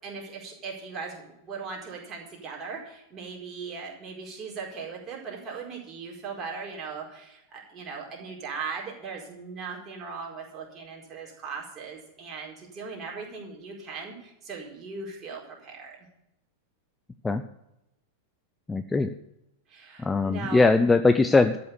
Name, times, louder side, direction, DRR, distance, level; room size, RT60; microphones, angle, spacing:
voice 1, 0.0-16.0 19.7-20.7, right 5 dB, 25° right, -2 dB, 4.6 m, -39 dB
voice 2, 18.7-19.1 20.0-21.6, left 3 dB, 10° left, 9 dB, 0.6 m, -21 dB
13.5 x 7.0 x 8.3 m, 0.85 s
figure-of-eight pair, 90°, 0 cm